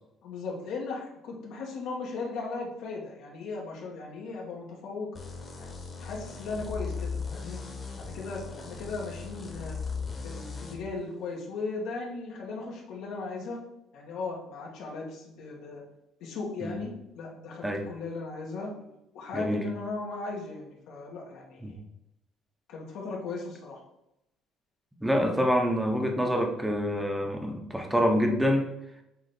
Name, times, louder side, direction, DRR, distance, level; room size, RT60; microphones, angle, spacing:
voice 1, 0.2-5.1 5.6-5.7 6.0-7.6 8.0-9.8 10.2-13.6 13.9-15.8 16.2-18.9 19.1-21.8 22.7-23.8, left 3 dB, 70° left, -2 dB, 2.0 m, -37 dB
sound 1, 5.1-10.8, left 5 dB, 25° left, 1.5 m, -38 dB
voice 2, 25.0-28.7, equal, 5° right, 2 dB, 1.1 m, -26 dB
7.9 x 3.6 x 4.4 m, 0.86 s
cardioid pair, 145°, 0 cm